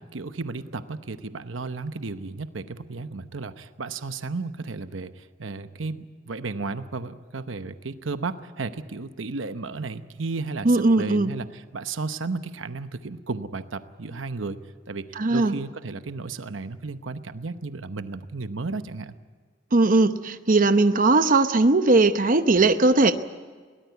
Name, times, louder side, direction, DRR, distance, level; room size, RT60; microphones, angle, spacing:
voice 1, 0.0-14.6 14.9-19.1, right 3 dB, 85° right, 10 dB, 0.9 m, -33 dB
voice 2, 10.6-11.3 15.2-15.5 19.7-23.1, right 2 dB, 45° right, 9 dB, 0.9 m, -19 dB
22.0 x 18.0 x 8.1 m, 1.5 s
head